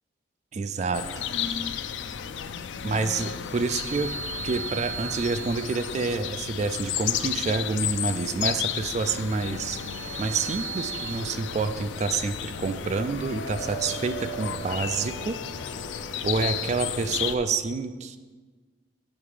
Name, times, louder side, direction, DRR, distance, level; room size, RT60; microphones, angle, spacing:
voice 1, 0.5-1.0 2.8-4.1 4.4-9.8 10.2-15.4 16.2-18.2, right 4 dB, 40° right, 10 dB, 0.3 m, -28 dB
sound 1, 0.9-17.4, left 8 dB, 80° left, 0.4 m, -33 dB
sound 2, 3.6-6.1 9.1-11.2, right 7 dB, 15° right, 0.8 m, -38 dB
sound 3, 9.5-16.3, right 7 dB, 60° right, 1.3 m, -43 dB
7.2 x 5.8 x 4.9 m, 1.4 s
head